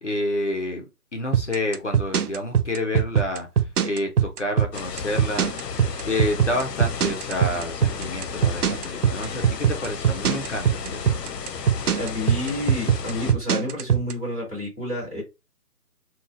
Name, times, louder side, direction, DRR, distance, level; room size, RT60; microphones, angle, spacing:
voice 1, 0.0-0.8 1.1-3.5 3.8-5.5 6.1-11.2, left 1 dB, 50° left, 2 dB, 0.7 m, -29 dB
sound 1, 1.3-14.1, right 8 dB, 70° right, 0.5 m, -21 dB
sound 2, 4.7-13.3, left 6 dB, 85° left, 0.7 m, -34 dB
voice 2, 12.0-15.2, left 1 dB, 10° left, -18 dB, 1.2 m, -29 dB
2.9 x 2.3 x 2.4 m, 0.26 s
hypercardioid pair, 175°, 48 cm